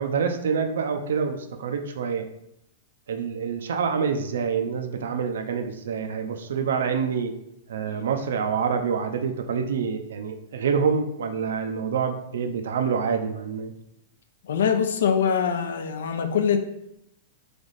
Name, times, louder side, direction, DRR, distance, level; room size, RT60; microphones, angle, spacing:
voice 1, 0.0-2.3 3.1-7.3 7.7-13.7, right 6 dB, 90° right, 6 dB, 0.5 m, -26 dB
voice 2, 14.4-16.6, left 7 dB, 85° left, 7 dB, 0.6 m, -23 dB
3.5 x 3.4 x 4.0 m, 0.80 s
supercardioid pair, 170°, 0 cm